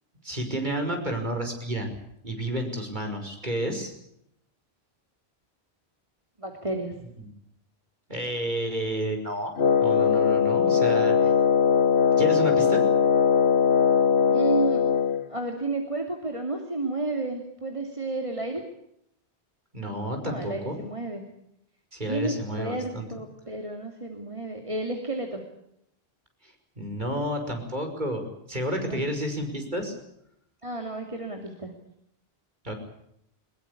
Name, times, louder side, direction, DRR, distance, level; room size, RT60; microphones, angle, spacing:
voice 1, 0.2-1.9 2.2-3.9 8.1-9.5 9.8-11.3 12.2-12.9 19.7-20.8 21.9-23.1 26.8-29.9 32.6-32.7, right 1 dB, 45° right, 4 dB, 5.8 m, -30 dB
voice 2, 6.4-6.9 14.3-14.9 15.3-18.6 20.2-21.2 22.1-25.4 28.9-29.1 30.6-31.7, right 2 dB, 30° right, 3 dB, 2.7 m, -31 dB
Wind instrument woodwind instrument, 9.6-15.3, left 7 dB, 80° left, 1.4 m, -20 dB
22.5 x 21.5 x 8.4 m, 0.75 s
omnidirectional pair, 1.1 m